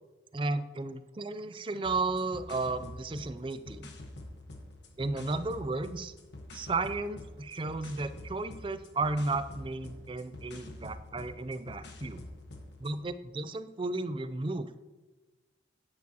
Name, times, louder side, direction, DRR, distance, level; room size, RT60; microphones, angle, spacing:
voice 1, 0.3-3.9 5.0-6.1 6.5-12.2 12.8-14.8, right 3 dB, 30° right, 12 dB, 0.4 m, -34 dB
sound 1, 1.8-13.0, left 1 dB, 75° left, 1.3 m, -47 dB
9.6 x 9.4 x 2.9 m, 1.2 s
head